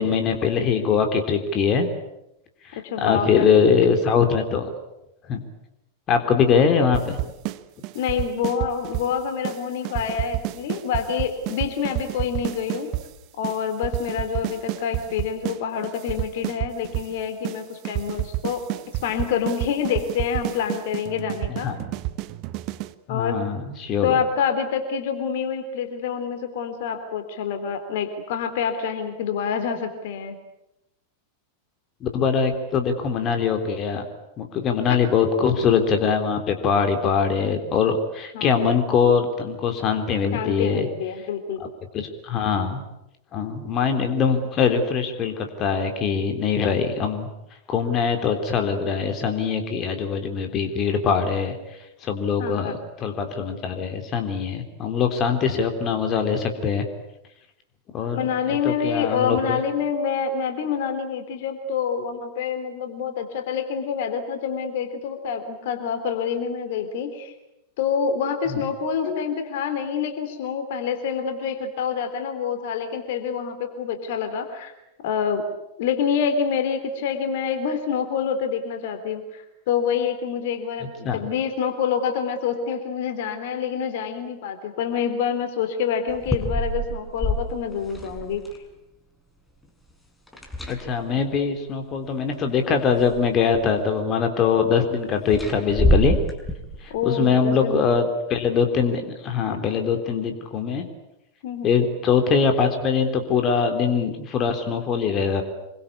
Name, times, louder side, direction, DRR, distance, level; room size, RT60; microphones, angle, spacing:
voice 1, 0.0-1.9 3.0-4.7 5.3-5.4 6.1-7.2 21.6-21.8 23.1-24.1 32.0-34.0 34.4-40.9 41.9-42.8 43.3-47.3 47.7-51.5 52.0-56.9 57.9-59.6 81.0-81.2 90.7-96.2 97.0-100.9 101.6-105.4, left 6 dB, 30° left, 5 dB, 3.6 m, -22 dB
voice 2, 2.8-3.8 7.9-12.9 13.4-21.7 23.1-23.4 24.0-30.4 38.3-38.7 40.3-41.6 52.4-52.7 58.1-67.3 67.8-74.7 75.0-75.4 75.8-88.6 96.9-97.9 101.4-101.9, left 7 dB, 55° left, 7 dB, 3.5 m, -27 dB
sound 1, 6.9-7.6 7.8-9.1 9.4-9.6 9.9-13.1 13.4-13.6 13.8-15.6 15.8-17.1 17.4-17.6 17.9-22.9, right 18 dB, 40° right, 1.3 m, -29 dB
sound 2, 86.1-88.6 90.3-91.2 92.3-92.4 92.9-93.7 95.3-97.0, equal, 5° left, 5.8 m, -26 dB
27.0 x 23.5 x 8.6 m, 0.88 s
figure-of-eight pair, 90°, 0 cm